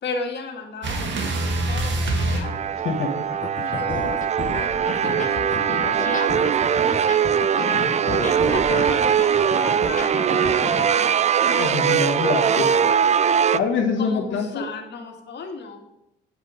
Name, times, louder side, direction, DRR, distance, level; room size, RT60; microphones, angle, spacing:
voice 1, 0.0-2.5 3.6-7.2 8.1-11.2 11.8-12.7 14.0-15.8, left 4 dB, 60° left, 2 dB, 2.0 m, -36 dB
sound 1, 0.8-3.3 4.7-6.0, right 2 dB, 65° right, 1.9 m, -27 dB
sound 2, 2.4-13.6, right 8 dB, 35° right, 0.4 m, -21 dB
voice 2, 2.8-3.2 11.4-12.6 13.5-14.7, left 5 dB, 80° left, -1 dB, 1.6 m, -24 dB
sound 3, 3.3-10.9, left 6 dB, 40° left, 0.9 m, -32 dB
8.9 x 8.1 x 5.0 m, 0.86 s
cardioid pair, 90°, 20 cm